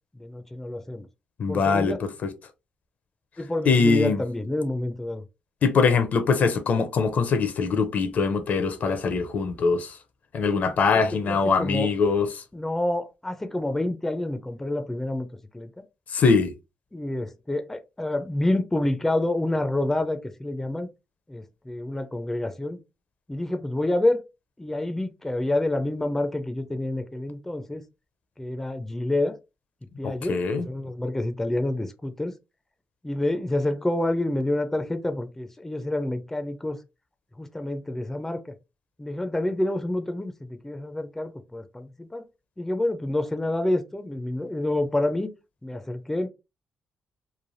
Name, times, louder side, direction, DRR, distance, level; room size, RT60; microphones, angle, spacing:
voice 1, 0.2-1.1 1.5-2.0 3.4-5.2 10.9-11.9 12.5-15.3 15.5-15.7 16.9-20.9 21.3-22.8 23.3-24.2 24.6-27.8 28.4-29.3 30.0-32.3 33.0-36.8 37.4-38.4 39.0-42.2 42.6-45.3 45.6-46.3, left 1 dB, 10° left, 0.4 m, -28 dB
voice 2, 1.4-2.3 3.7-4.2 5.6-10.0 10.3-12.4 16.1-16.5 30.0-30.7, left 5 dB, 60° left, 0.6 m, -22 dB
3.2 x 2.2 x 2.5 m
cardioid pair, 80°, 3 cm